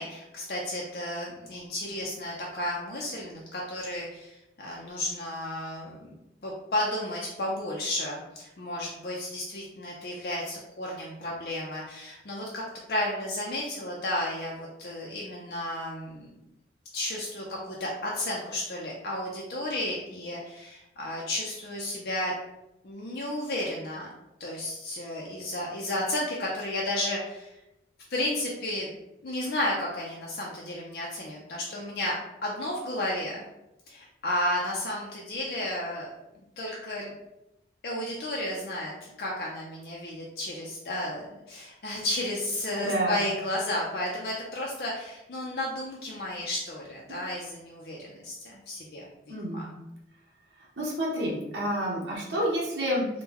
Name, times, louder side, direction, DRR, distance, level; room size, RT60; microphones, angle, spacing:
voice 1, 0.0-6.2 6.4-12.6 12.9-16.3 16.9-22.3 22.8-24.1 24.4-27.5 28.1-28.9 29.2-32.1 32.4-33.5 33.9-37.1 37.8-49.1 49.5-49.7, left 1 dB, 60° left, -3 dB, 0.5 m, -33 dB
voice 2, 42.8-43.3 49.3-49.7 50.8-53.1, equal, 90° right, -4 dB, 0.8 m, -29 dB
3.6 x 2.2 x 2.9 m, 0.91 s
head